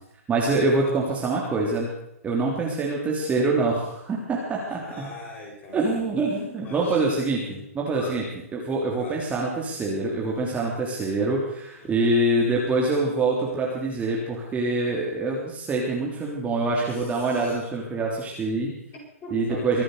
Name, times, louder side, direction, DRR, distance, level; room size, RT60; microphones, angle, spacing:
voice 1, 0.3-1.9 2.2-5.1 5.7-8.2 8.5-18.7 19.3-19.8, right 2 dB, 15° right, -2 dB, 3.3 m, -25 dB
voice 2, 4.7-6.2 6.6-7.3 7.9-8.2 9.0-9.3 11.8-12.1 16.9-17.6 18.9-19.8, left 1 dB, 25° left, -2 dB, 7.7 m, -41 dB
24.0 x 8.6 x 6.6 m, 0.81 s
hypercardioid pair, 135°, 8 cm